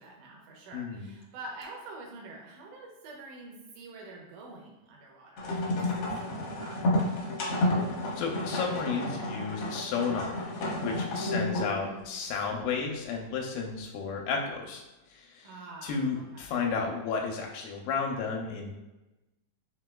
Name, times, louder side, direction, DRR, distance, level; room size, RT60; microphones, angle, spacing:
voice 1, 0.0-5.7 6.2-6.8 11.1-12.1 15.4-16.5, right 2 dB, 75° right, -1 dB, 2.2 m, -46 dB
voice 2, 0.7-1.1 8.2-10.3 10.8-14.8 15.1-15.5 15.8-18.7, left 5 dB, 85° left, 0 dB, 2.3 m, -32 dB
sound 1, 5.4-11.8, left 1 dB, 70° left, 1.3 m, -31 dB
5.8 x 2.8 x 2.2 m, 1.0 s
omnidirectional pair, 3.9 m